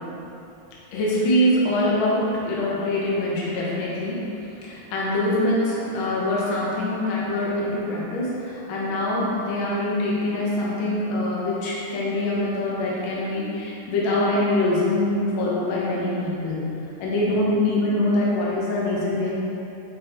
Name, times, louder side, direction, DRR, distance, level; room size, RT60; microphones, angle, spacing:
voice 1, 0.9-4.2 4.6-16.6 17.0-19.3, left 1 dB, 85° left, -6 dB, 1.1 m, -24 dB
6.0 x 3.6 x 4.4 m, 2.9 s
omnidirectional pair, 3.9 m